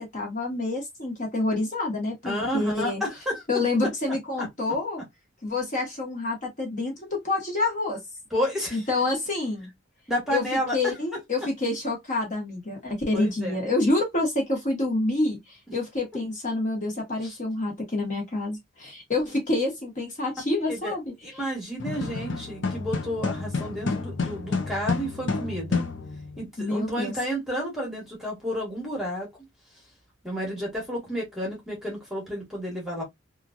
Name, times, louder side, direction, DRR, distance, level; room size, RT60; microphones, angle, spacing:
voice 1, 0.0-3.0 3.5-5.0 5.4-8.0 8.7-9.7 10.3-10.4 10.7-21.1 26.6-27.1, left 2 dB, 40° left, 1.2 m, -27 dB
voice 2, 2.2-3.4 3.8-3.9 4.4-4.5 8.3-8.8 10.1-11.0 13.1-13.6 15.7-15.8 17.2-17.4 20.7-20.9 21.2-25.8 26.4-29.3 30.2-33.0, equal, ahead, 1.2 m, -31 dB
sound 1, 21.8-26.4, left 4 dB, 60° left, 0.6 m, -30 dB
3.0 x 2.4 x 2.4 m
head